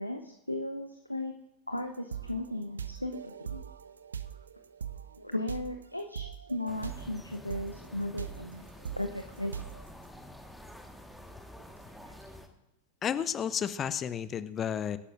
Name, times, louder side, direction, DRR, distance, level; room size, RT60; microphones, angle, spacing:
voice 1, 0.0-1.3 1.7-3.6 5.2-8.7 9.0-9.6 12.1-12.2, left 1 dB, 85° left, 6 dB, 0.8 m, -36 dB
sound 1, 1.7-7.2 7.5-9.9, right 8 dB, 70° right, 0.6 m, -41 dB
sound 2, 6.7-12.5, left 1 dB, ahead, 1.5 m, -49 dB
voice 2, 13.0-15.0, left 8 dB, 25° left, 14 dB, 0.7 m, -32 dB
25.0 x 11.5 x 2.6 m, 0.95 s
figure-of-eight pair, 90°, 0 cm